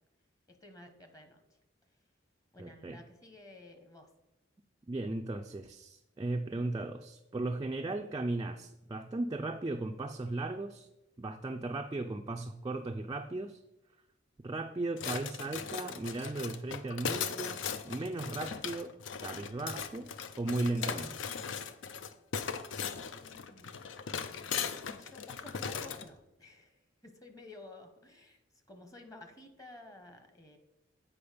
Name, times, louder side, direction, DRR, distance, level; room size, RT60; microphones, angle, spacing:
voice 1, 0.5-1.4 2.5-4.1 22.7-23.8 24.9-28.4 28.7-30.6, left 2 dB, 20° left, 6 dB, 1.0 m, -53 dB
voice 2, 2.6-3.0 4.9-10.9 11.2-13.6 14.4-18.9 19.2-21.1, right 2 dB, 20° right, 3 dB, 0.3 m, -36 dB
sound 1, 15.0-26.1, left 7 dB, 70° left, 0.5 m, -38 dB
8.6 x 4.7 x 5.0 m, 0.90 s
head